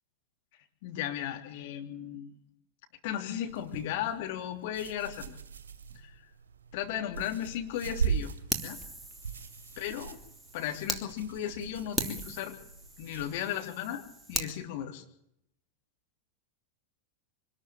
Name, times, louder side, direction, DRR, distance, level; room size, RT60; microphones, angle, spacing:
voice 1, 0.8-2.4 3.0-5.4 5.9-6.1 6.7-8.8 9.8-10.2 10.5-12.5 13.0-14.0 14.3-15.0, left 10 dB, 50° left, 4 dB, 3.3 m, -35 dB
sound 1, 3.5-13.3, right 6 dB, 65° right, 2.4 m, -39 dB
Fire, 8.5-11.0 11.5-11.6 12.0-14.5, right 2 dB, 5° right, 3.1 m, -38 dB
24.5 x 13.5 x 9.0 m, 0.73 s
figure-of-eight pair, 90°, 0 cm